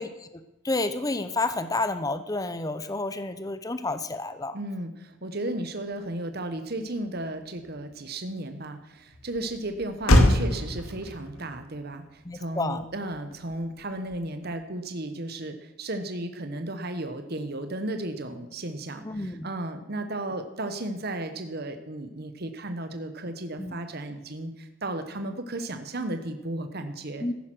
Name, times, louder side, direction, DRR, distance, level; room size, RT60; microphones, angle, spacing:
voice 1, 0.0-4.6 12.2-12.8 19.0-19.5 23.6-23.7 27.2-27.3, left 2 dB, 15° left, 11 dB, 0.6 m, -30 dB
voice 2, 4.5-27.3, right 1 dB, 45° right, 8 dB, 1.1 m, -34 dB
Motor vehicle (road), 5.9-14.6, left 1 dB, 90° left, 2.1 m, -28 dB
14.5 x 10.5 x 6.2 m, 0.98 s
head